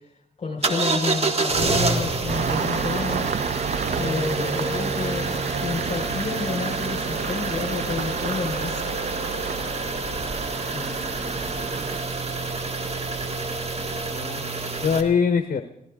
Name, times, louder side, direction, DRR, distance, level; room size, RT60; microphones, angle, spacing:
voice 1, 0.4-3.5 3.9-9.0, left 4 dB, 45° left, 3 dB, 5.1 m, -30 dB
sound 1, 0.6-15.0, right 3 dB, 45° right, 1.7 m, -27 dB
Engine starting, 2.3-12.0, right 6 dB, 60° right, 0.7 m, -31 dB
voice 2, 10.7-11.6 14.1-15.6, left 6 dB, 60° left, 8 dB, 0.9 m, -25 dB
23.5 x 16.5 x 3.7 m, 0.86 s
cardioid pair, 90°, 15 cm